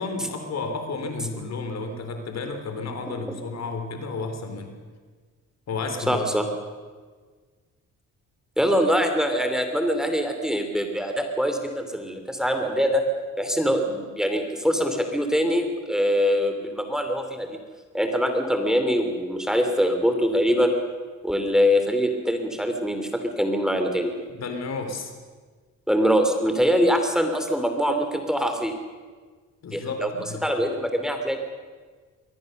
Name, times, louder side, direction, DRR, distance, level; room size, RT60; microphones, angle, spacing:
voice 1, 0.0-4.8 5.7-6.3 24.3-25.1 29.6-30.4, left 3 dB, 60° left, 6 dB, 3.6 m, -32 dB
voice 2, 6.1-6.4 8.6-13.0 13.4-17.6 17.9-20.7 21.2-24.1 25.9-28.7 29.7-30.1 30.4-31.4, equal, ahead, 5 dB, 3.0 m, -23 dB
23.5 x 17.5 x 6.7 m, 1.5 s
cardioid pair, 90°, 30 cm